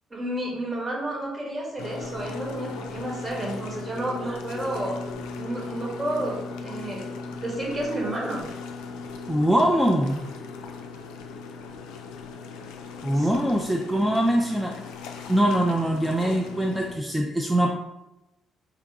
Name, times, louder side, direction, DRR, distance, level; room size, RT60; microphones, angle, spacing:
voice 1, 0.1-5.0 5.4-7.0 7.4-8.5 13.1-13.3 13.5-13.6, right 1 dB, 30° right, -2 dB, 1.4 m, -31 dB
sound 1, 1.8-16.9, left 4 dB, 70° left, 0.3 m, -38 dB
voice 2, 9.3-10.2 13.0-14.7 15.3-17.7, right 1 dB, 5° right, -1 dB, 0.5 m, -23 dB
3.5 x 2.9 x 3.5 m, 0.95 s
figure-of-eight pair, 45°, 0 cm